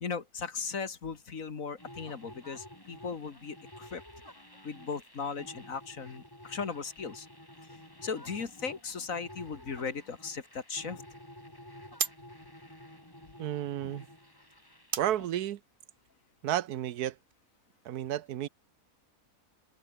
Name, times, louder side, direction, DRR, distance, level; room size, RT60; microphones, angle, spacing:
voice 1, 0.0-4.0 4.6-7.3 7.7-11.0, left 5 dB, 60° left, 2.3 m, -37 dB
sound 1, 1.8-15.3, left 1 dB, 15° left, 5.2 m, -51 dB
sound 2, 8.8-17.4, right 5 dB, 40° right, 1.3 m, -43 dB
voice 2, 13.4-14.1 15.0-15.6 16.4-17.2 17.8-18.5, right 12 dB, 85° right, 1.3 m, -32 dB
open air
omnidirectional pair, 1.6 m